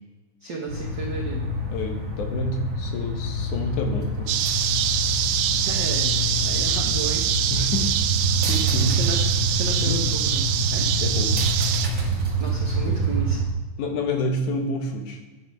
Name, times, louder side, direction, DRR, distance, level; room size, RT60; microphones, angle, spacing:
voice 1, 0.4-1.6 5.6-7.3 8.9-10.9 12.4-13.4, right 3 dB, 65° right, -1 dB, 1.1 m, -33 dB
sound 1, 0.7-13.4, right 1 dB, 35° right, 1.3 m, -26 dB
voice 2, 1.7-4.3 7.5-8.1 8.5-9.0 9.8-10.0 11.0-11.3 12.8-13.0 13.8-15.3, left 2 dB, 75° left, 3 dB, 2.6 m, -28 dB
sound 2, 4.3-11.9, right 11 dB, 90° right, 2.2 m, -25 dB
9.7 x 6.7 x 5.2 m, 1.2 s
omnidirectional pair, 3.7 m